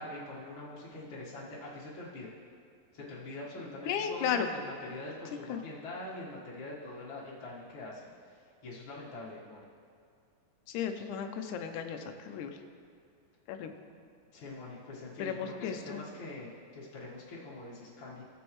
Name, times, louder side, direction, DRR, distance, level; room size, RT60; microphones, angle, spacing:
voice 1, 0.0-2.3 2.9-9.6 14.3-18.2, left 2 dB, 45° left, -7 dB, 1.7 m, -44 dB
voice 2, 3.9-4.5 5.5-5.6 10.7-12.0 12.2-12.5 13.5-13.7 15.2-16.0, left 8 dB, 75° left, 6 dB, 2.0 m, -34 dB
18.0 x 7.1 x 3.1 m, 2.4 s
omnidirectional pair, 4.0 m